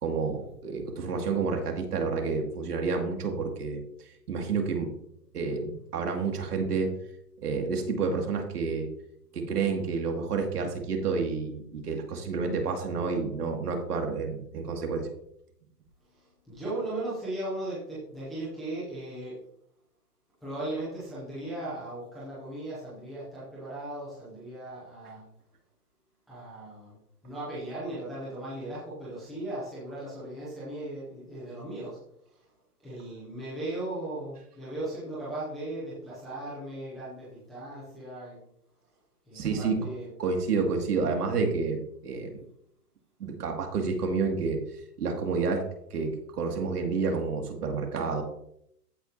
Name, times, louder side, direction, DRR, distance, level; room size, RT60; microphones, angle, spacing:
voice 1, 0.0-3.8 4.3-4.9 5.3-6.9 7.4-8.9 9.3-15.1 39.3-39.9 40.2-42.4 43.2-44.6 45.0-45.6 45.9-48.2, right 4 dB, 70° right, 3 dB, 2.5 m, -29 dB
voice 2, 16.5-19.3 20.4-25.2 26.3-26.9 27.2-32.0 32.8-38.3 39.3-40.1, right 1 dB, ahead, -12 dB, 0.5 m, -37 dB
14.5 x 5.2 x 2.8 m, 0.72 s
hypercardioid pair, 145°, 48 cm